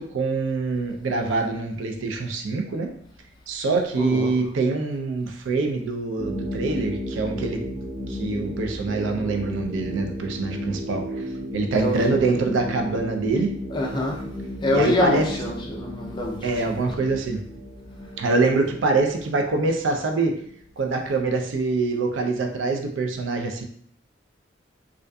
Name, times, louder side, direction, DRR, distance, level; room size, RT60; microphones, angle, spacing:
voice 1, 0.0-2.9 3.5-7.6 8.1-11.3 11.5-13.5 14.7-15.3 16.4-17.4 18.2-20.3 20.8-23.6, right 3 dB, 85° right, 3 dB, 0.4 m, -24 dB
voice 2, 3.9-4.3 11.7-12.1 13.7-14.2 14.6-16.7, left 2 dB, 25° left, -1 dB, 0.4 m, -25 dB
sound 1, 6.2-20.5, equal, 35° right, 0.9 m, -34 dB
2.5 x 2.4 x 2.2 m, 0.63 s
head